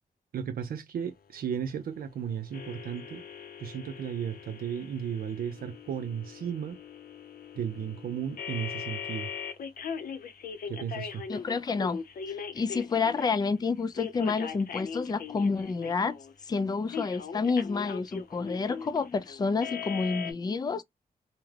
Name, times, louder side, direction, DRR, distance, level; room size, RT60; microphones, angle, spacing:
voice 1, 0.3-3.2 3.6-6.8 7.6-9.3 10.7-11.2, right 8 dB, 70° right, 0.4 m, -35 dB
sound 1, 2.5-13.5 13.9-16.3 16.9-20.3, left 6 dB, 70° left, 0.6 m, -40 dB
voice 2, 11.3-12.0 12.3-16.2 16.4-20.8, left 4 dB, 25° left, 0.4 m, -29 dB
2.3 x 2.1 x 3.2 m
cardioid pair, 70°, 16 cm